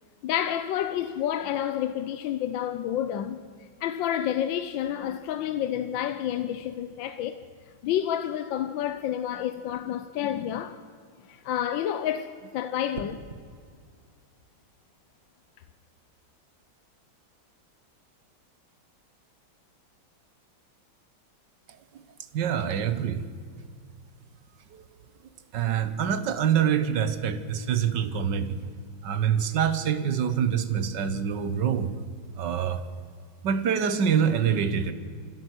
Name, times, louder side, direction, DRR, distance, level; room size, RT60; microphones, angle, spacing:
voice 1, 0.2-3.4 3.8-7.4 7.8-10.8 11.3-13.2, left 10 dB, 75° left, 1.4 m, -29 dB
sound 1, 12.9-13.5 15.5-15.7, right 4 dB, 40° right, 1.5 m, -42 dB
voice 2, 22.3-23.3 25.5-28.6 29.0-31.9 32.4-32.8 33.4-34.9, right 8 dB, 65° right, 1.6 m, -25 dB
27.0 x 12.5 x 7.8 m
omnidirectional pair, 2.2 m